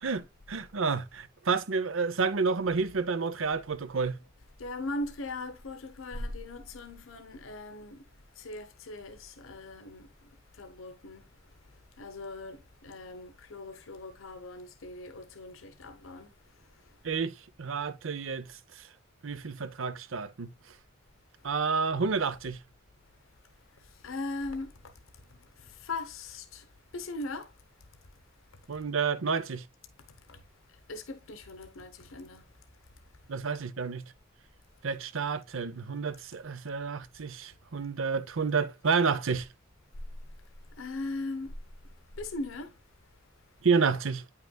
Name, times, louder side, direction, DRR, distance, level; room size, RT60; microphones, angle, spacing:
voice 1, 0.0-4.2 17.0-18.9 19.2-20.5 21.4-22.6 28.7-29.6 33.3-34.0 34.8-39.5 43.6-44.2, right 5 dB, 75° right, 0.7 m, -30 dB
voice 2, 4.6-8.0 8.3-10.1 10.5-11.3 12.0-16.3 16.8-16.9 23.7-24.9 25.3-26.7 26.9-27.5 30.1-30.4 30.7-32.5 40.8-41.6 42.2-42.7, left 2 dB, 85° left, 1.0 m, -39 dB
9.3 x 5.7 x 2.2 m
head